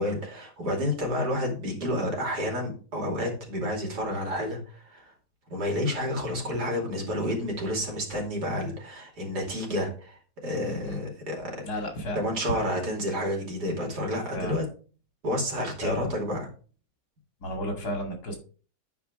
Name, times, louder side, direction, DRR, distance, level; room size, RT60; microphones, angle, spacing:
voice 1, 0.0-5.1 5.5-11.5 12.1-14.6 15.2-16.5, left 1 dB, 85° right, 1 dB, 3.1 m, -30 dB
voice 2, 11.6-12.8 14.3-14.7 15.8-16.3 17.4-18.4, equal, 70° left, 3 dB, 2.7 m, -33 dB
9.3 x 4.9 x 4.7 m, 0.39 s
omnidirectional pair, 1.7 m